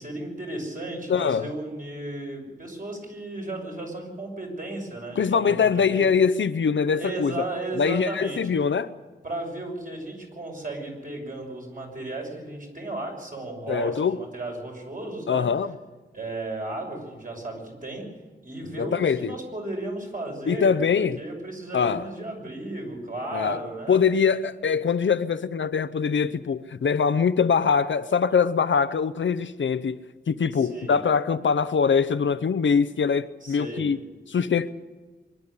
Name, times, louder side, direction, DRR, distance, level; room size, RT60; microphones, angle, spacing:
voice 1, 0.0-6.0 6.9-8.6 9.2-15.5 16.1-18.0 18.4-24.0 30.5-31.0 33.4-33.9, right 2 dB, 45° right, 6.3 m, -35 dB
voice 2, 1.1-1.5 5.2-7.4 7.7-8.9 13.7-14.2 15.3-15.7 18.8-19.3 20.5-21.2 21.7-22.0 23.3-23.6 23.9-30.0 30.3-34.0 34.3-34.7, left 6 dB, 80° left, 0.8 m, -23 dB
24.0 x 11.5 x 10.0 m
wide cardioid pair, 95°, 19 cm